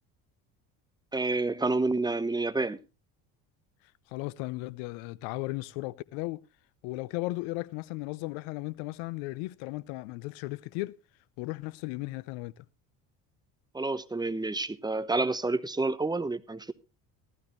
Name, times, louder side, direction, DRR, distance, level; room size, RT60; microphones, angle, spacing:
voice 1, 1.1-2.8 13.7-16.7, right 3 dB, 10° right, 1.0 m, -29 dB
voice 2, 4.1-6.4 6.8-10.9 11.4-12.6, left 21 dB, 75° left, 0.8 m, -36 dB
15.0 x 12.5 x 3.1 m
hypercardioid pair, 70°, 47 cm